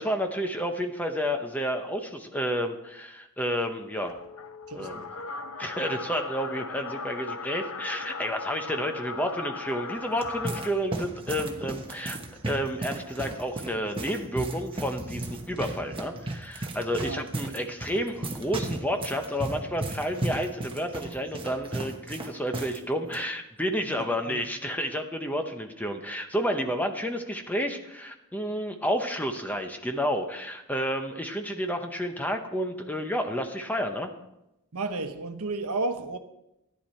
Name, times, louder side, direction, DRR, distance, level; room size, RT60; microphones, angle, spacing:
voice 1, 0.0-4.2 4.7-5.1 5.6-12.2 12.4-34.1, equal, 5° left, 0.8 m, -30 dB
sound 1, 4.0-10.7, left 4 dB, 65° left, 0.7 m, -38 dB
voice 2, 4.7-5.0 17.0-17.3 23.9-24.4 34.7-36.2, right 3 dB, 80° right, 1.0 m, -33 dB
sound 2, 9.9-22.8 23.0-23.2 23.9-24.2, right 2 dB, 25° right, 1.0 m, -35 dB
13.5 x 10.5 x 4.4 m
head